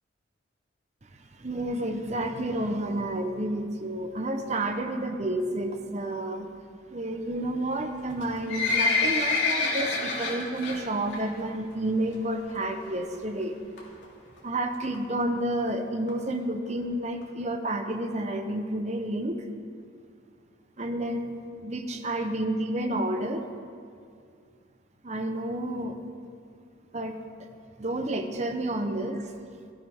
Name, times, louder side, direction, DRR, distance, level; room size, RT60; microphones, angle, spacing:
voice 1, 1.4-6.5 6.9-13.6 14.4-19.4 20.8-23.5 25.0-26.0 26.9-27.2 27.8-29.3, right 1 dB, 35° right, 6 dB, 0.8 m, -30 dB
Livestock farm animals working animals, 8.1-10.8 11.1-11.4 11.7-11.8 12.5-12.6 12.9-13.0 13.1-13.2 13.8-14.0 14.6-14.7 14.9-15.0 15.2-15.3 15.5-15.6 16.1-16.2 16.7-16.8 17.2-17.3, left 3 dB, 65° left, 2.5 m, -26 dB
16.5 x 13.0 x 3.6 m, 2.3 s
head